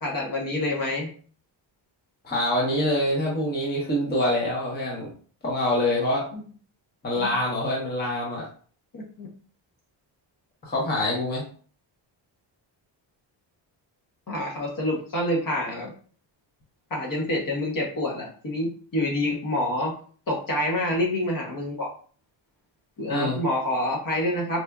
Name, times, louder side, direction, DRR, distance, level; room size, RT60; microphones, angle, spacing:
voice 1, 0.0-1.1 6.3-6.4 7.2-7.3 8.9-9.3 14.3-15.9 16.9-20.0 20.3-21.9 23.0-24.6, left 1 dB, 45° left, -2 dB, 1.0 m, -27 dB
voice 2, 2.2-5.1 5.4-6.2 7.0-8.5 10.6-11.4 23.1-23.4, left 1 dB, 20° left, -4 dB, 0.8 m, -25 dB
4.2 x 2.5 x 2.3 m, 0.43 s
wide cardioid pair, 180°, 46 cm